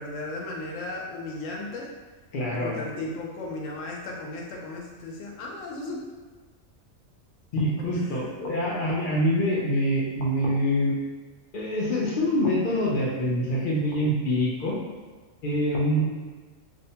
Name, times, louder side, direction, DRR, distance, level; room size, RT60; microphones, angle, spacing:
voice 1, 0.0-1.9 2.5-6.0 7.9-8.3, left 2 dB, 75° left, -1 dB, 0.9 m, -35 dB
voice 2, 2.3-2.8 7.5-10.9 11.5-14.8 15.4-16.1, equal, 60° left, -4 dB, 0.5 m, -25 dB
2.6 x 2.1 x 2.7 m, 1.3 s
omnidirectional pair, 1.3 m